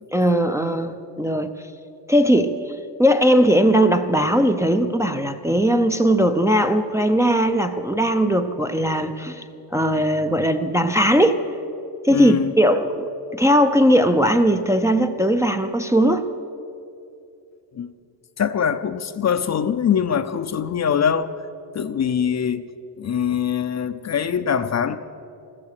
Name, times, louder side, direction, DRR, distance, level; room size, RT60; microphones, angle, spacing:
voice 1, 0.1-1.5 2.1-2.6 3.0-9.4 9.7-11.4 12.0-16.3, equal, 5° right, 0.5 m, -19 dB
voice 2, 12.1-12.5 17.7-17.9 18.4-21.3 21.7-22.7 23.0-25.0, left 8 dB, 40° left, 0.6 m, -23 dB
14.5 x 14.0 x 6.6 m
cardioid pair, 125°, 42 cm